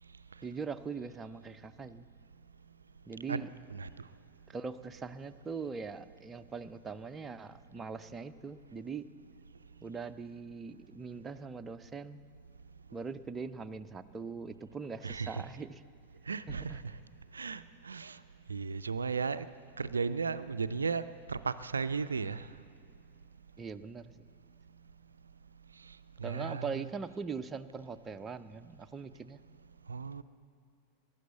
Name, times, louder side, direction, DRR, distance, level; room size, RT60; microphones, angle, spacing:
voice 1, 0.4-2.1 3.1-3.5 4.5-9.0 9.8-12.2 12.9-15.8 16.5-16.8 23.6-24.3 26.2-29.4, right 5 dB, 15° right, 9 dB, 0.5 m, -41 dB
voice 2, 15.0-15.4 16.3-16.8 17.3-18.2 18.5-19.5 19.8-22.4 26.2-26.8 29.9-30.2, right 5 dB, 75° right, 13 dB, 0.3 m, -35 dB
14.0 x 11.0 x 8.0 m, 2.4 s
figure-of-eight pair, 90°, 0 cm